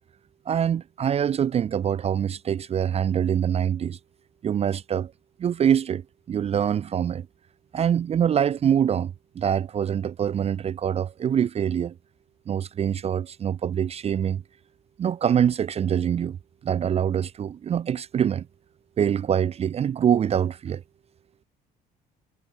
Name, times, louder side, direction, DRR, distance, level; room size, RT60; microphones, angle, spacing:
voice 1, 0.5-4.0 4.4-5.1 5.4-6.0 6.3-7.3 7.7-11.9 12.5-14.4 15.0-16.4 16.6-18.5 19.0-20.8, right 8 dB, 35° right, 0.5 m, -24 dB
cardioid pair, 110°, 17 cm